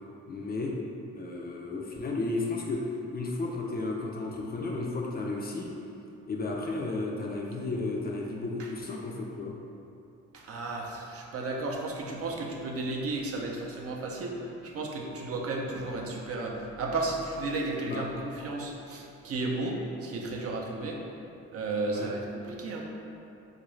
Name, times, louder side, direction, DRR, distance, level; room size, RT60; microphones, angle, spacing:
voice 1, 0.3-0.7 1.1-2.8 3.1-5.7 6.3-9.6 17.8-18.1 21.9-22.1, left 3 dB, 30° left, -1 dB, 0.4 m, -33 dB
voice 2, 10.3-21.0 21.5-22.9, right 2 dB, 50° right, -1 dB, 0.5 m, -33 dB
3.6 x 2.5 x 3.1 m, 2.8 s
cardioid pair, 90°, 30 cm